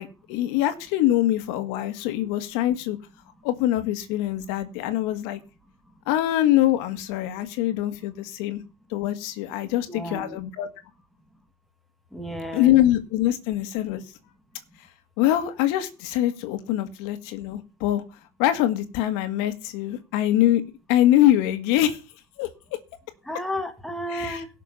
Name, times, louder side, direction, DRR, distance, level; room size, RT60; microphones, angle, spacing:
voice 1, 0.0-3.0 3.4-5.4 6.1-8.6 8.9-10.7 12.5-14.0 15.2-18.0 18.4-20.6 20.9-22.0 22.4-22.5 24.1-24.4, left 13 dB, 65° left, 2.1 m, -23 dB
voice 2, 9.6-10.4 12.1-12.7 23.2-24.5, equal, ahead, 2.1 m, -33 dB
17.0 x 6.7 x 5.6 m
supercardioid pair, 130°, 34 cm